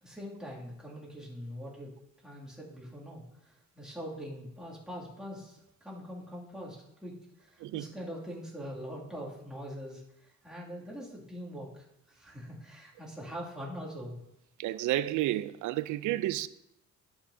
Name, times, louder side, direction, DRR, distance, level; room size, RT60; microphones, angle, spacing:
voice 1, 0.0-1.9 2.2-14.2, equal, ahead, 2.3 m, -43 dB
voice 2, 7.6-7.9 14.6-16.5, right 14 dB, 80° right, 0.5 m, -31 dB
11.5 x 5.9 x 2.7 m
cardioid pair, 90°, 30 cm